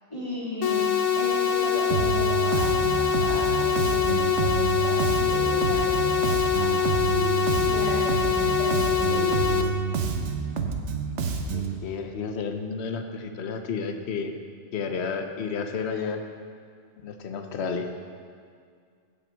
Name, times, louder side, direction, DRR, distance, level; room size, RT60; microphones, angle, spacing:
voice 1, 0.1-0.8 1.2-9.6, left 1 dB, 25° left, -11 dB, 2.8 m, -34 dB
sound 1, 0.6-9.6, left 7 dB, 85° left, 1.1 m, -24 dB
Bass guitar, 1.9-11.8, right 6 dB, 70° right, 1.1 m, -28 dB
voice 2, 11.5-14.4 14.7-16.2 17.0-17.9, left 5 dB, 60° left, 6 dB, 1.0 m, -31 dB
16.5 x 5.7 x 4.5 m, 2.1 s
omnidirectional pair, 1.3 m